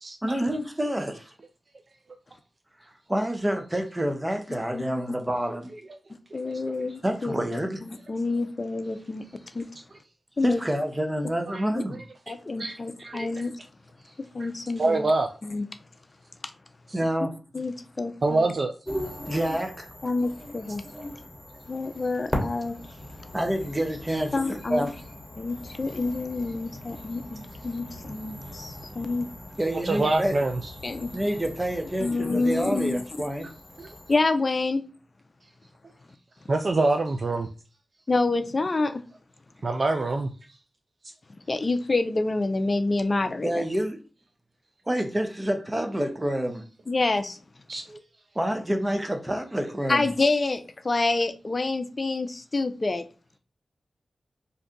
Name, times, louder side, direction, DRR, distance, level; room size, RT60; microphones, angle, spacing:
voice 1, 0.2-1.2 3.1-5.7 7.0-7.8 10.4-12.0 16.9-17.3 19.3-19.9 23.3-24.9 29.6-30.4 31.1-33.5 43.4-44.0 44.9-46.6 48.3-50.1, right 1 dB, 20° right, 0.7 m, -28 dB
voice 2, 6.3-9.2 9.5-9.6 10.4-10.6 11.7-11.8 12.3-13.5 14.3-15.1 15.4-15.7 17.5-18.5 20.0-20.8 21.7-22.8 24.3-24.9 25.4-29.3 30.8-31.1 32.0-33.0 34.1-34.8 38.1-39.0 41.5-43.6 46.9-47.4 49.9-53.0, left 3 dB, 45° left, 0.4 m, -27 dB
voice 3, 12.6-13.3 14.4-14.5 14.8-15.3 18.2-18.7 29.8-30.6 33.8-33.9 36.5-37.5 39.6-40.3 47.7-48.0, right 2 dB, 55° right, 0.3 m, -25 dB
sound 1, 18.8-34.2, left 1 dB, 15° left, 1.1 m, -39 dB
2.7 x 2.3 x 3.8 m
cardioid pair, 50°, 0 cm